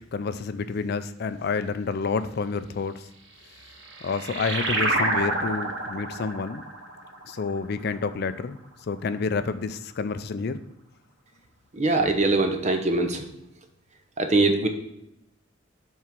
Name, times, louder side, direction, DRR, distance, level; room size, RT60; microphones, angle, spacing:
voice 1, 0.0-3.1 4.0-6.6 7.2-8.6 8.9-10.6, left 4 dB, 55° left, 11 dB, 0.4 m, -29 dB
sound 1, 3.4-8.5, right 2 dB, 60° right, 1.1 m, -29 dB
voice 2, 11.7-13.2 14.2-14.7, right 2 dB, 35° right, 6 dB, 0.8 m, -22 dB
7.5 x 3.7 x 5.9 m, 0.82 s
head